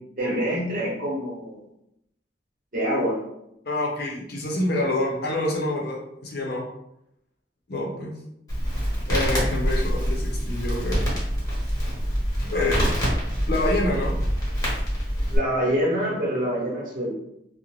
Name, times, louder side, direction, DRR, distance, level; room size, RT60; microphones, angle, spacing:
voice 1, 0.2-1.6 2.7-3.2 12.4-12.7 15.3-17.1, equal, 50° right, -5 dB, 0.9 m, -26 dB
voice 2, 3.6-6.6 7.7-8.1 9.1-11.0 12.5-12.8 13.5-14.1, left 1 dB, 60° left, -1 dB, 0.6 m, -27 dB
Crackle, 8.5-15.4, equal, 20° left, 1.0 m, -25 dB
2.5 x 2.1 x 3.0 m, 0.80 s
head